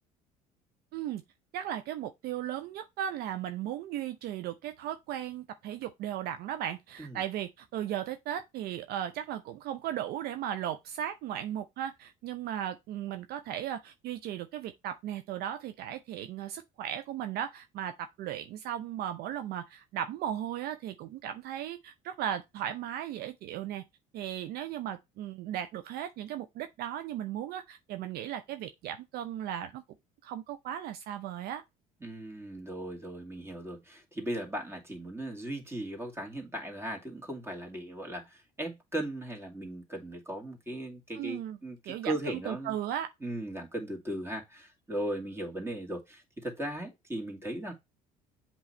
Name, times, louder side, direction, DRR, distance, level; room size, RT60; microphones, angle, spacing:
voice 1, 1.5-23.8 24.1-29.8 30.2-31.6 41.2-41.6 41.9-43.1, right 11 dB, 55° right, 0.6 m, -36 dB
voice 2, 32.0-42.8 43.2-47.7, right 1 dB, 15° right, 2.4 m, -37 dB
7.9 x 3.1 x 4.3 m
hypercardioid pair, 60°, 19 cm